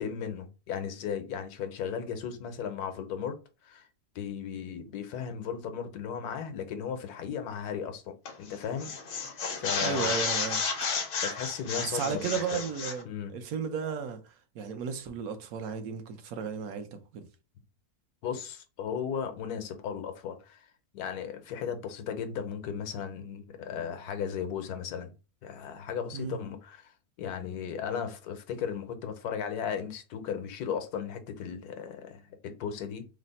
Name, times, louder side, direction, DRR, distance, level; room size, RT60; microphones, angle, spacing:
voice 1, 0.0-3.4 3.6-3.9 4.1-8.9 9.3-10.2 11.2-12.6 13.1-13.3 18.2-20.7 20.9-25.1 25.4-26.9 27.2-33.1, left 7 dB, 80° left, 1.2 m, -36 dB
sound 1, 8.2-8.5 8.8-13.0, left 4 dB, 60° left, 0.6 m, -32 dB
voice 2, 9.8-10.6 11.8-17.3 26.1-26.4, right 6 dB, 75° right, 1.1 m, -34 dB
3.2 x 2.0 x 3.9 m
omnidirectional pair, 1.6 m